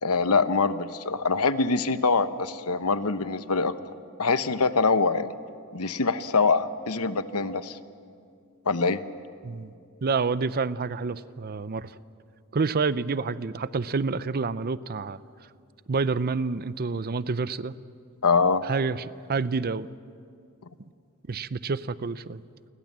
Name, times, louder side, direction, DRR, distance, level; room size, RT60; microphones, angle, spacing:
voice 1, 0.0-3.7 4.2-5.3 5.7-7.8 8.7-9.0 18.2-18.6, left 4 dB, 80° left, 12 dB, 1.0 m, -24 dB
voice 2, 10.0-11.9 12.5-15.2 15.9-17.7 18.6-19.9 21.3-22.4, right 4 dB, 45° right, 16 dB, 0.6 m, -28 dB
29.0 x 21.5 x 7.5 m, 2.4 s
head